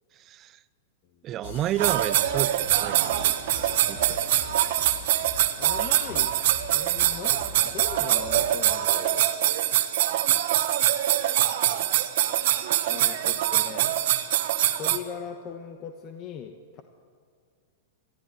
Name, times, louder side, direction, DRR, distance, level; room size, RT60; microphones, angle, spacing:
voice 1, 0.2-0.6 1.2-4.2, right 12 dB, 30° right, 17 dB, 0.5 m, -32 dB
sound 1, 1.4-8.7, left 5 dB, 80° left, 2.7 m, -43 dB
sound 2, 1.8-15.0, right 13 dB, 60° right, 1.4 m, -24 dB
voice 2, 5.6-6.4 6.7-9.3 12.9-13.9 14.7-16.8, left 7 dB, 35° left, 6 dB, 1.2 m, -39 dB
21.5 x 14.0 x 9.6 m, 2.2 s
supercardioid pair, 150°, 0 cm